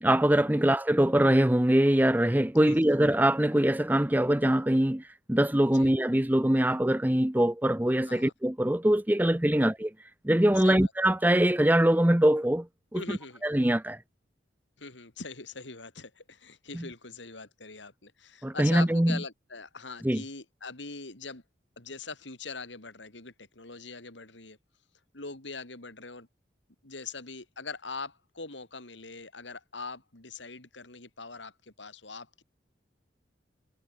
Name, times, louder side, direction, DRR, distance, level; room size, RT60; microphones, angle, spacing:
voice 1, 0.0-5.0 5.3-9.9 10.2-12.7 12.9-14.0 16.7-16.8 18.4-19.2 20.0-20.2, right 1 dB, 10° right, 0.7 m, -23 dB
voice 2, 2.6-3.0 5.7-5.9 8.0-8.3 9.5-9.7 10.6-10.9 12.9-13.4 14.8-21.4 21.8-24.6 25.1-26.3 26.8-32.4, left 4 dB, 80° left, 4.0 m, -42 dB
head